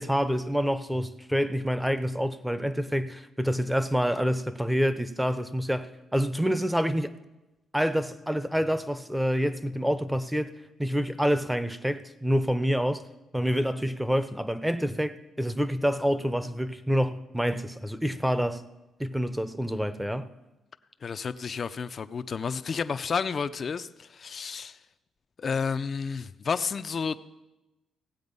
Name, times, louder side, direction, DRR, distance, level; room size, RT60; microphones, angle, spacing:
voice 1, 0.0-7.1 7.7-10.5 10.8-13.0 13.3-18.6 19.0-20.3, equal, 5° right, 0.8 m, -27 dB
voice 2, 21.0-24.8 25.4-27.2, left 5 dB, 45° left, 0.5 m, -31 dB
16.5 x 7.9 x 5.4 m
cardioid pair, 90°, 0 cm